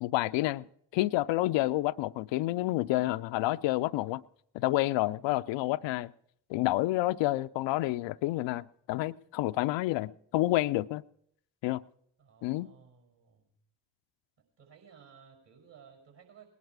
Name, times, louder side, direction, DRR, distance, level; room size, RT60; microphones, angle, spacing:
voice 1, 0.0-0.6 0.9-4.2 4.5-6.1 6.5-11.0 11.6-11.8 12.4-12.7, left 17 dB, 65° left, 0.5 m, -29 dB
voice 2, 12.2-13.5 14.6-16.5, right 7 dB, 55° right, 5.6 m, -57 dB
19.5 x 11.0 x 4.7 m
hypercardioid pair, 45°, 49 cm